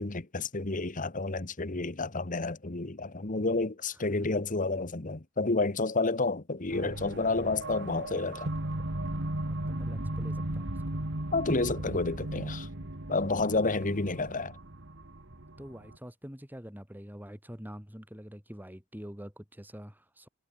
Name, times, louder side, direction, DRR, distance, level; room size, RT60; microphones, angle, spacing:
voice 1, 0.0-8.5 11.3-12.7 13.1-14.6, left 3 dB, 40° left, 1.5 m, -30 dB
voice 2, 3.9-4.2 9.4-11.0 15.6-20.3, equal, 10° right, 6.3 m, -46 dB
sound 1, 6.7-16.0, right 1 dB, 65° right, 2.2 m, -36 dB
head